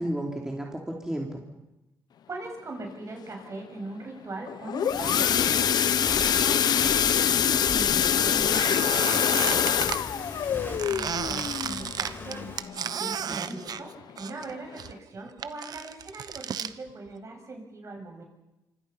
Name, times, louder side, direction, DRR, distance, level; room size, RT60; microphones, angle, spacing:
voice 1, 0.0-1.4 13.0-13.6, right 1 dB, 10° right, -1 dB, 3.6 m, -33 dB
voice 2, 2.3-6.8 7.7-12.5 12.9-13.9 14.2-18.2, right 2 dB, 45° right, 2 dB, 7.6 m, -41 dB
sound 1, 4.5-13.1 13.6-13.8 14.1-14.2 14.7-14.8, left 9 dB, 70° left, 1.0 m, -25 dB
Walk footsteps, 4.9-12.6, left 2 dB, 30° left, 6.3 m, -40 dB
Squeak, 8.5-10.0 10.8-14.5 14.8-16.7, right 8 dB, 60° right, 1.0 m, -33 dB
26.0 x 25.5 x 5.7 m, 0.97 s
cardioid pair, 90°, 7 cm